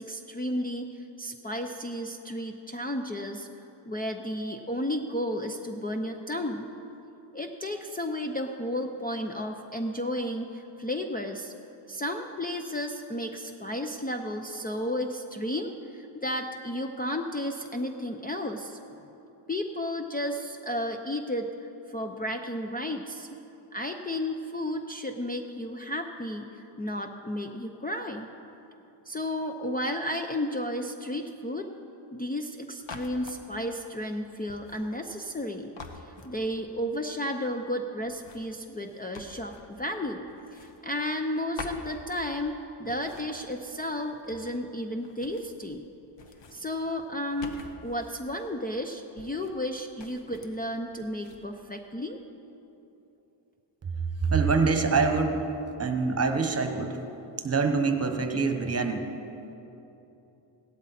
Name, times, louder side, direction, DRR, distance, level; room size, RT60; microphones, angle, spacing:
voice 1, 0.0-3.5 3.8-6.7 7.3-11.5 11.9-18.8 19.5-21.5 21.9-23.3 23.7-28.3 29.1-31.7 32.1-45.8 46.5-47.6 47.8-52.2, left 1 dB, 20° left, 4 dB, 0.6 m, -33 dB
sound 1, 32.8-33.4 34.5-35.5 35.8-36.8 38.0-39.9 40.3-41.3 41.6-42.5 42.9-44.7 45.0-45.9 46.1-48.3 49.2-49.7 50.0-50.6 51.0-51.4, left 4 dB, 60° left, 1.2 m, -47 dB
voice 2, 54.2-55.4 55.8-57.0 57.4-59.0, right 4 dB, 30° right, 6 dB, 1.1 m, -25 dB
16.5 x 12.5 x 4.2 m, 3.0 s
cardioid pair, 100°, 49 cm